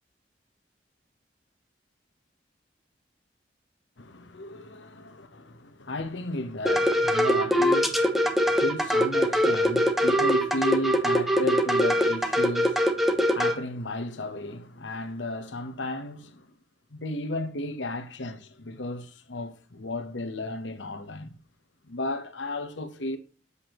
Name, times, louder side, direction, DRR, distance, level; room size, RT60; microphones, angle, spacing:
voice 1, 4.0-16.5 16.9-21.4 21.8-23.2, left 1 dB, 90° left, 1.1 m, -34 dB
sound 1, 6.7-13.6, equal, ahead, 0.8 m, -22 dB
8.3 x 7.0 x 3.0 m
head